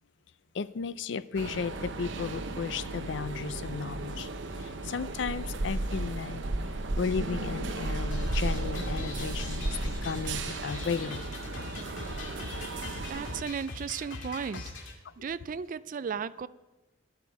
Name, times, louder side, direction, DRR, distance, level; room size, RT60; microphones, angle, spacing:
voice 1, 0.5-4.3 4.6-6.4 7.0-11.2 12.8-12.9, left 5 dB, 65° left, 0.4 m, -34 dB
sound 1, 1.3-13.4, right 2 dB, 70° right, 0.9 m, -34 dB
sound 2, 8.1-14.9, left 3 dB, 85° left, 2.2 m, -41 dB
voice 2, 13.1-14.6 15.2-16.5, right 6 dB, 45° right, 0.3 m, -35 dB
12.0 x 12.0 x 4.8 m
head